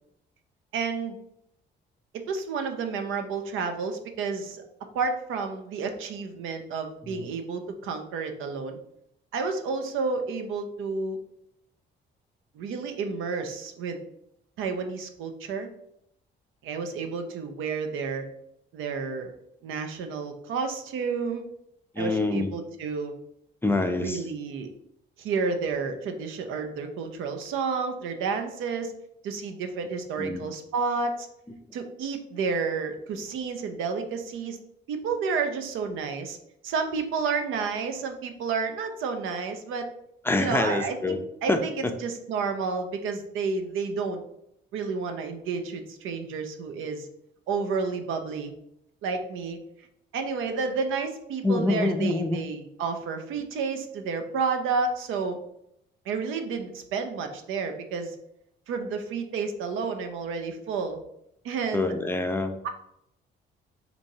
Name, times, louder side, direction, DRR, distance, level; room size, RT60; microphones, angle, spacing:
voice 1, 0.7-1.2 2.1-4.6 4.9-8.8 9.3-11.2 12.5-14.0 14.6-15.7 16.6-18.3 18.7-19.3 19.6-21.4 22.0-23.1 24.0-24.7 25.2-28.9 29.2-31.3 31.7-34.6 34.9-36.4 36.6-39.9 40.4-44.2 44.7-47.1 47.5-48.5 49.0-49.6 50.1-55.4 56.1-58.2 58.7-61.0 61.4-61.9 62.6-62.7, right 5 dB, 85° right, 6 dB, 0.5 m, -30 dB
voice 2, 21.9-22.5 23.6-24.2 30.2-30.4 40.2-41.2 41.5-41.9 51.4-52.4 61.7-62.6, left 2 dB, 10° left, 5 dB, 0.4 m, -26 dB
4.4 x 2.6 x 2.7 m, 0.77 s
cardioid pair, 90°, 20 cm